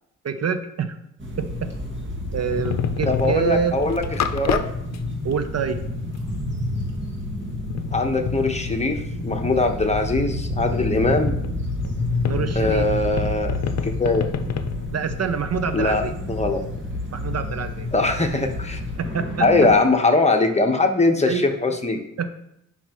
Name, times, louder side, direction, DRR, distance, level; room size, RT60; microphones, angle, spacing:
voice 1, 0.2-1.0 1.4-1.7 2.3-3.8 5.2-5.8 12.2-12.9 14.9-16.1 17.1-17.9 19.0-19.5 21.2-21.5 22.2-22.3, right 6 dB, 55° right, 10 dB, 0.7 m, -26 dB
sound 1, 1.2-19.8, left 1 dB, 35° right, 1.9 m, -30 dB
sound 2, 2.5-3.5 3.9-4.6 4.9-5.0 5.3-5.4 6.1-6.2 7.4-9.7 11.2-19.5, left 7 dB, 60° left, 0.7 m, -30 dB
voice 2, 3.0-4.0 4.3-4.6 7.9-11.4 12.5-13.6 13.8-14.3 15.7-16.0 16.3-16.6 17.9-18.8 19.4-22.0, left 2 dB, 20° left, 4 dB, 1.1 m, -21 dB
9.8 x 5.7 x 3.0 m, 0.79 s
cardioid pair, 70°, 31 cm